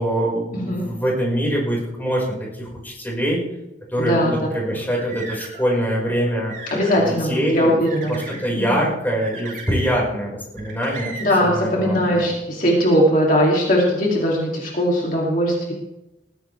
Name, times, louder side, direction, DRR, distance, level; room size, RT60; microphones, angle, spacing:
voice 1, 0.0-3.5 3.9-6.5 6.9-7.8 8.1-12.3, equal, 10° left, -4 dB, 5.4 m, -24 dB
voice 2, 0.5-0.9 4.0-4.3 6.7-8.8 11.2-15.7, equal, 45° left, -3 dB, 2.9 m, -20 dB
sound 1, 4.7-5.7 6.2-7.1 7.9-8.4 9.2-10.2 10.6-11.6, right 3 dB, 45° right, 6.3 m, -37 dB
20.5 x 15.5 x 3.5 m, 0.97 s
head